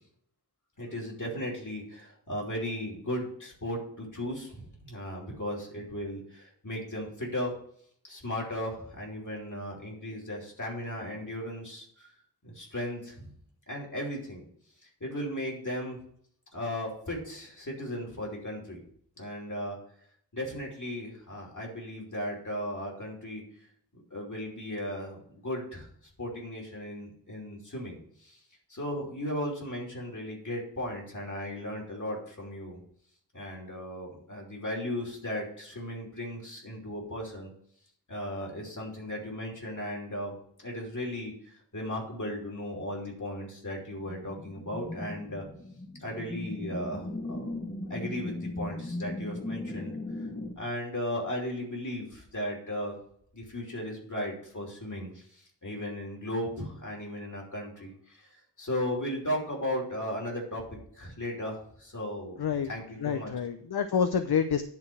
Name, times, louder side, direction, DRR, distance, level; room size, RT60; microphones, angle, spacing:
voice 1, 0.8-7.5 8.1-12.1 12.4-13.3 13.7-14.4 15.0-16.0 16.5-18.8 19.2-19.8 20.3-23.4 24.1-25.9 26.2-28.4 28.7-32.8 33.3-37.5 38.1-45.4 46.0-47.4 47.9-49.9 50.6-52.9 53.3-58.3 58.6-62.4 62.7-63.3, left 1 dB, 45° left, -2 dB, 3.1 m, -36 dB
sound 1, 44.0-50.5, left 2 dB, 25° left, 1.3 m, -37 dB
voice 2, 62.4-62.7 63.0-64.6, left 7 dB, 70° left, 9 dB, 0.6 m, -28 dB
10.5 x 3.9 x 7.5 m, 0.65 s
wide cardioid pair, 75°, 41 cm